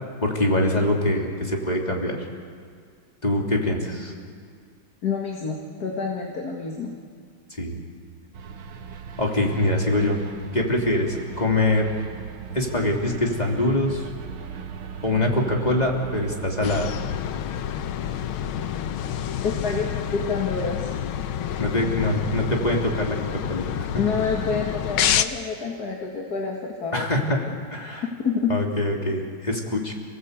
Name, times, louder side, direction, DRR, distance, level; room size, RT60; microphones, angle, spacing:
voice 1, 0.2-2.2 3.2-4.1 7.6-7.8 9.2-10.2 10.5-11.9 12.5-14.1 15.0-16.9 21.6-23.6 26.9-28.1 28.5-29.9, left 1 dB, 20° left, 0 dB, 3.1 m, -24 dB
voice 2, 5.0-6.9 19.4-20.8 23.9-27.1 28.2-28.5, left 5 dB, 50° left, 0 dB, 2.4 m, -27 dB
sound 1, 8.3-16.8, right 6 dB, 85° right, 2.2 m, -38 dB
sound 2, 16.6-25.2, left 9 dB, 85° left, 1.7 m, -28 dB
28.0 x 18.5 x 8.2 m, 2.1 s
omnidirectional pair, 2.3 m